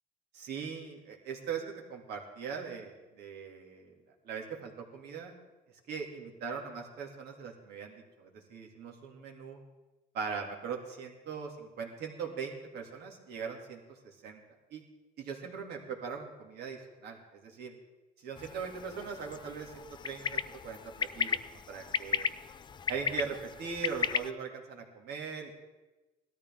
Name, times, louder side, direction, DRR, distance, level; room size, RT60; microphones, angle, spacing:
voice 1, 0.3-3.9 4.2-5.3 5.9-9.6 10.1-14.4 14.7-14.8 15.2-17.7 18.2-22.3 22.9-25.5, right 6 dB, 75° right, 1 dB, 2.5 m, -40 dB
sound 1, 18.4-24.3, left 6 dB, 25° left, 0.4 m, -35 dB
18.5 x 13.5 x 3.7 m, 1.1 s
cardioid pair, 110°, 17 cm